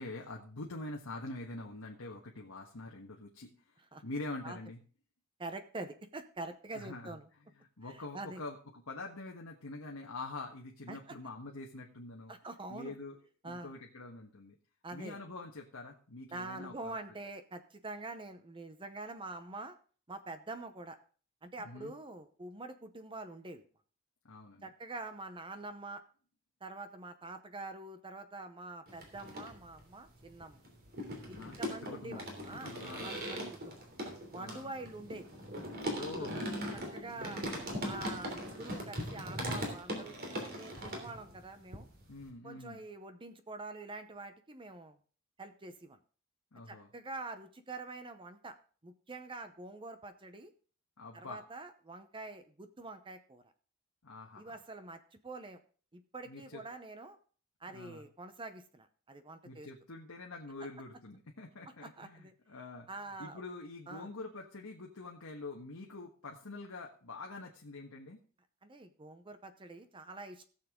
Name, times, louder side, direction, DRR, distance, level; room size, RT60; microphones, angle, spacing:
voice 1, 0.0-4.8 6.7-7.1 7.8-12.3 12.7-13.2 13.4-14.6 14.9-17.0 21.6-21.9 24.2-24.7 31.2-33.2 34.4-34.8 35.9-36.3 37.1-37.4 42.1-42.8 46.5-46.9 51.0-51.4 54.0-54.5 56.3-56.6 57.7-58.1 59.4-62.9 63.2-68.2, left 2 dB, 80° left, 0 dB, 1.4 m, -45 dB
voice 2, 5.4-7.3 7.9-8.4 10.9-11.2 12.3-12.9 13.4-13.7 14.8-15.2 16.3-19.7 20.1-21.0 21.4-23.6 24.6-26.0 26.6-30.6 31.3-33.8 34.3-35.3 36.2-36.4 36.7-37.4 37.8-41.9 42.4-45.0 45.4-46.0 46.7-48.6 48.8-50.5 51.1-53.4 54.4-55.6 55.9-57.2 57.6-59.7 61.8-62.3 62.9-63.4 63.9-64.1 68.6-70.5, right 2 dB, 25° right, 10 dB, 0.8 m, -45 dB
sound 1, 28.9-29.8 30.2-41.5 41.7-42.3, equal, 45° right, 3.1 m, -40 dB
17.0 x 7.1 x 3.7 m, 0.41 s
head